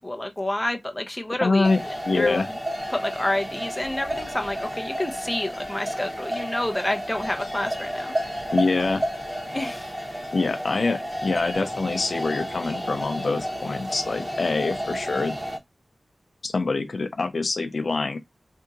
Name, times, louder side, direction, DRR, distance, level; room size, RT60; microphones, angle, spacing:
voice 1, 0.0-2.4 2.9-8.1 9.5-9.9, left 1 dB, 15° left, 0.8 m, -29 dB
voice 2, 1.4-2.5 8.5-9.0 10.3-15.4 16.4-18.2, left 3 dB, 70° left, 0.5 m, -25 dB
sound 1, 1.6-15.6, equal, 10° right, 1.2 m, -32 dB
2.7 x 2.7 x 3.7 m
wide cardioid pair, 70°, 0 cm